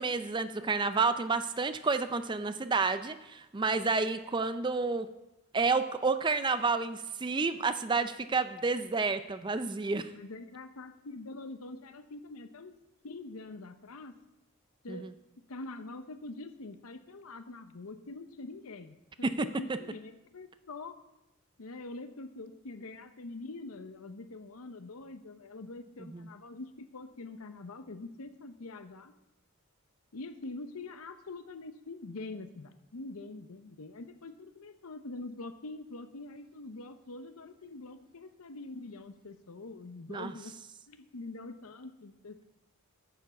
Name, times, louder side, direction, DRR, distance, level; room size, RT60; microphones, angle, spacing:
voice 1, 0.0-5.1 5.5-10.1 14.9-15.1 19.2-19.5 26.1-26.3 40.1-40.3, right 4 dB, 20° right, 11 dB, 0.4 m, -30 dB
voice 2, 10.1-12.8 13.0-14.1 14.8-15.1 15.5-21.0 21.6-29.1 30.1-40.5 40.9-42.5, left 2 dB, 80° left, 10 dB, 0.8 m, -44 dB
9.3 x 6.9 x 7.1 m, 0.95 s
head